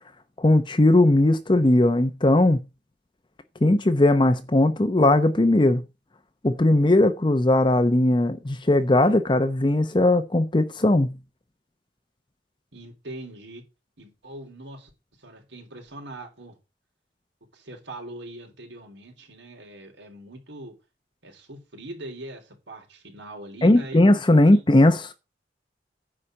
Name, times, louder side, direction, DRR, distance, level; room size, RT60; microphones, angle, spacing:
voice 1, 0.4-2.6 3.6-5.8 6.4-11.2 23.6-25.1, left 1 dB, 25° left, 0.7 m, -19 dB
voice 2, 12.7-13.6 14.0-14.9 15.2-16.6 17.5-20.8 21.2-24.0 24.5-24.6, right 1 dB, 90° right, 3.9 m, -41 dB
9.8 x 4.3 x 7.6 m
head